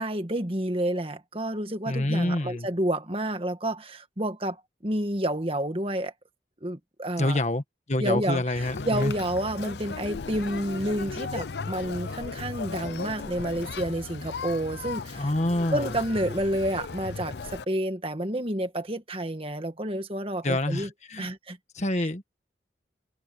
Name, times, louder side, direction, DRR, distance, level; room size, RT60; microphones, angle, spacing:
voice 1, 0.0-6.1 6.6-7.4 8.0-15.3 15.7-20.9 21.2-21.6 21.9-22.1, right 1 dB, 30° right, 1.8 m, -29 dB
voice 2, 1.8-2.7 7.2-7.6 7.9-9.1 15.1-16.0 20.4-21.3 21.7-22.3, left 1 dB, 40° left, 1.6 m, -27 dB
Conversation, 8.6-17.6, left 4 dB, 70° left, 0.5 m, -36 dB
head